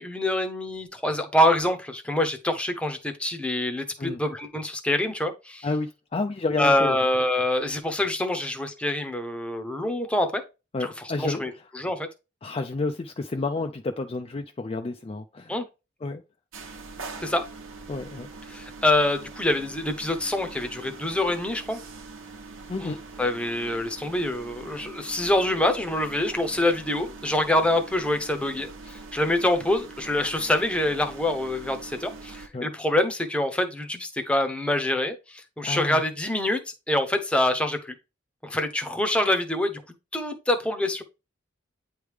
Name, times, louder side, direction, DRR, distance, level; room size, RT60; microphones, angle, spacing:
voice 1, 0.0-5.7 6.6-10.4 10.8-12.1 15.5-15.7 17.2-17.4 18.5-21.8 22.8-22.9 23.2-36.6 36.9-37.9 38.4-39.8 40.1-41.0, left 1 dB, 5° left, 0.8 m, -25 dB
voice 2, 5.6-7.0 10.7-11.4 12.4-15.5 16.0-16.2 17.9-18.3 22.7-23.0 32.5-32.7 35.6-36.0, left 3 dB, 30° left, 0.4 m, -30 dB
sound 1, 16.5-32.5, right 3 dB, 80° right, 1.1 m, -43 dB
8.9 x 3.3 x 3.4 m
head